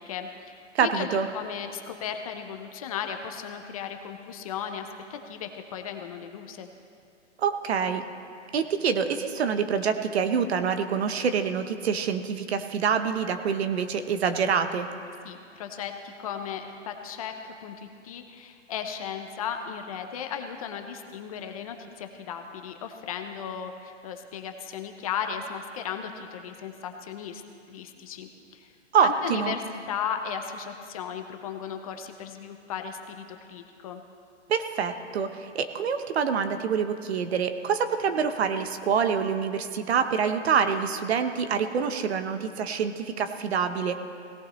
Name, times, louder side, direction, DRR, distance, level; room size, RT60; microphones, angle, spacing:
voice 1, 0.0-1.1 1.3-6.7 15.2-27.4 27.7-28.7 29.0-34.0, left 8 dB, 30° left, 6 dB, 0.7 m, -36 dB
voice 2, 0.7-1.3 7.4-8.0 8.5-14.9 28.9-29.5 34.5-43.9, right 6 dB, 60° right, 8 dB, 1.1 m, -26 dB
17.5 x 17.0 x 3.2 m, 2.4 s
hypercardioid pair, 155°, 36 cm